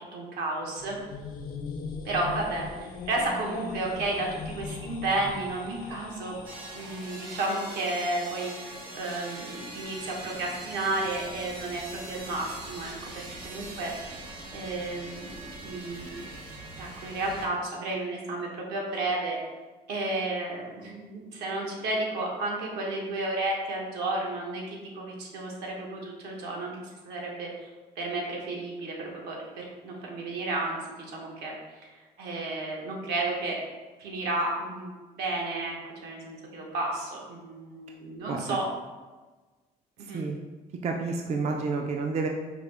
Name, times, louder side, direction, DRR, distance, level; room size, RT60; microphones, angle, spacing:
voice 1, 0.1-1.0 2.0-6.3 6.7-14.2 14.5-16.2 16.8-19.4 19.9-27.5 28.0-31.5 31.8-31.9 32.2-33.6 34.0-35.7 36.0-38.7 40.0-40.2, right 2 dB, 80° right, -1 dB, 0.9 m, -32 dB
sound 1, 0.6-7.6, left 5 dB, 60° left, 0.5 m, -40 dB
sound 2, 6.4-17.5, right 2 dB, 60° right, 0.9 m, -42 dB
voice 2, 40.8-42.3, right 4 dB, 40° right, 2 dB, 0.4 m, -29 dB
4.8 x 2.0 x 3.3 m, 1.3 s
cardioid pair, 110°, 17 cm